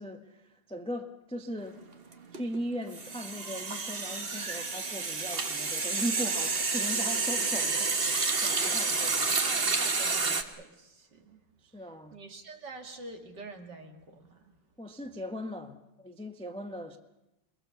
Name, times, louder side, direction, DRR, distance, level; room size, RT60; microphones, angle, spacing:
voice 1, 0.0-1.8 2.3-9.3 11.6-12.1 14.8-17.0, equal, 5° left, 0.8 m, -39 dB
sound 1, 1.6-1.8 2.1-10.4, right 4 dB, 30° right, 1.3 m, -29 dB
voice 2, 9.4-11.4 12.1-14.4, right 3 dB, 55° right, 2.8 m, -46 dB
28.5 x 21.5 x 7.1 m
omnidirectional pair, 2.3 m